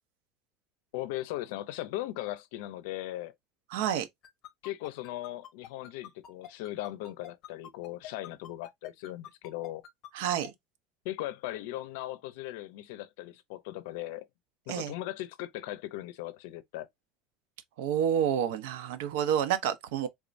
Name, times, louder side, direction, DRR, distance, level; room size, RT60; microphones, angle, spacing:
voice 1, 0.9-3.3 4.6-9.8 11.0-14.3 14.7-16.9, left 15 dB, 75° left, 0.5 m, -38 dB
voice 2, 3.7-4.1 10.1-10.5 14.7-14.9 17.8-20.1, right 9 dB, 80° right, 0.7 m, -29 dB
sound 1, 4.2-10.5, left 10 dB, 40° left, 0.9 m, -46 dB
3.6 x 3.1 x 2.5 m
cardioid pair, 155°, 0 cm